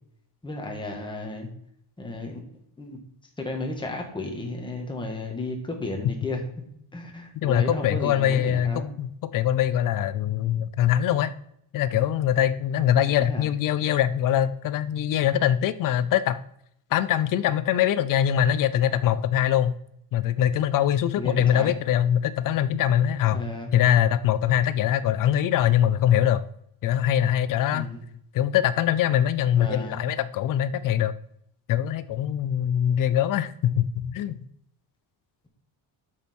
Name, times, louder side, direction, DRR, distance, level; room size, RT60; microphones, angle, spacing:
voice 1, 0.4-1.5 2.0-2.4 2.8-3.0 3.4-6.4 6.9-8.9 13.2-13.5 21.2-21.8 23.3-23.7 27.7-28.0 29.6-30.1, left 2 dB, 10° left, 1 dB, 1.5 m, -33 dB
voice 2, 7.3-11.3 11.7-16.4 16.9-19.8 20.1-23.4 23.7-26.5 26.8-27.9 28.3-31.1 31.7-34.4, left 10 dB, 45° left, 13 dB, 0.5 m, -23 dB
8.5 x 6.5 x 4.3 m, 0.70 s
cardioid pair, 165°, 49 cm